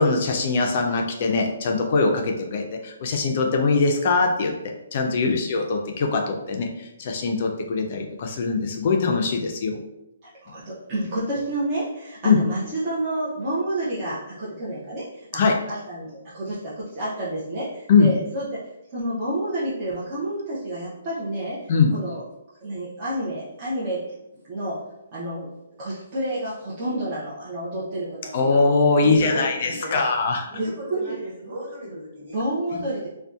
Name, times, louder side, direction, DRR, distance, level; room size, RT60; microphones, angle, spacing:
voice 1, 0.0-4.5 4.9-6.7 7.0-9.8 12.2-12.4 15.3-15.6 17.9-18.1 21.7-21.9 28.3-30.4 32.7-32.8, left 4 dB, 45° left, 2 dB, 0.3 m, -21 dB
voice 2, 10.2-16.1 16.3-18.6 18.9-22.2 22.6-24.0 24.5-24.8 25.1-25.5 25.8-28.6 30.6-31.2 32.3-33.1, right 1 dB, 30° right, -9 dB, 0.5 m, -29 dB
voice 3, 29.0-29.4 29.7-30.0 30.5-32.4, equal, 55° right, -5 dB, 1.5 m, -35 dB
2.6 x 2.1 x 2.3 m, 0.90 s
hypercardioid pair, 160°, 0 cm